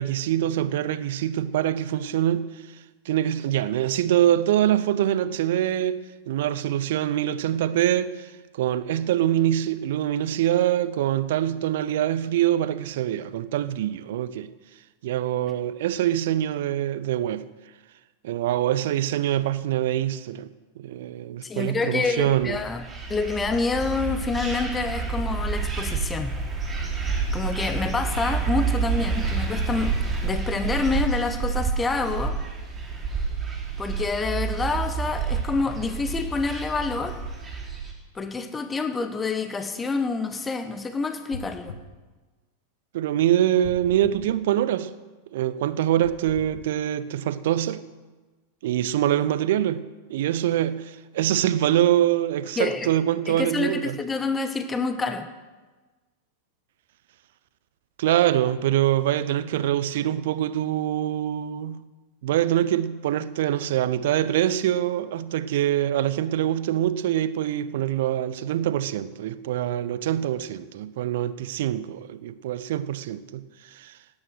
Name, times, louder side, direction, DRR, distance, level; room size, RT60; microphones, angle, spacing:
voice 1, 0.0-2.6 3.1-6.0 6.3-14.5 15.0-17.4 18.2-20.5 20.8-22.6 42.9-44.9 45.3-47.8 48.6-49.8 50.1-54.0 58.0-61.8 62.2-74.0, right 12 dB, 55° right, 0.7 m, -24 dB
voice 2, 21.4-22.8 23.1-26.3 27.0-29.9 30.2-32.4 33.8-37.2 38.1-41.7 52.6-52.9 53.3-55.3, left 4 dB, 15° left, 1.1 m, -27 dB
sound 1, 22.2-37.9, right 5 dB, 20° right, 4.1 m, -29 dB
sound 2, 41.3-41.9 43.6-44.2 46.0-46.5, left 3 dB, 65° left, 1.4 m, -39 dB
18.0 x 9.8 x 6.4 m
figure-of-eight pair, 90°, 0 cm